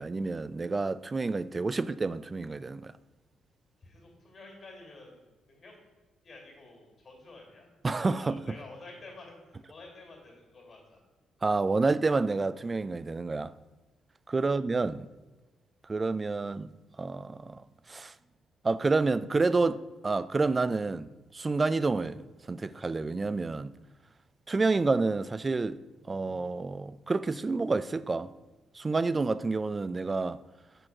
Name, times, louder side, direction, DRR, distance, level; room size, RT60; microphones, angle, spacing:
voice 1, 0.0-2.9 7.8-8.6 11.4-13.5 14.3-15.1 15.9-16.7 17.0-17.6 17.9-18.1 18.6-22.2 22.5-23.7 24.5-28.3 28.7-30.4, right 3 dB, 25° right, 0.3 m, -29 dB
voice 2, 3.8-5.2 5.5-5.8 6.2-7.7 8.0-11.0 14.4-14.6, left 2 dB, 45° left, 2.5 m, -50 dB
6.4 x 4.5 x 5.9 m
cardioid pair, 90°, 0 cm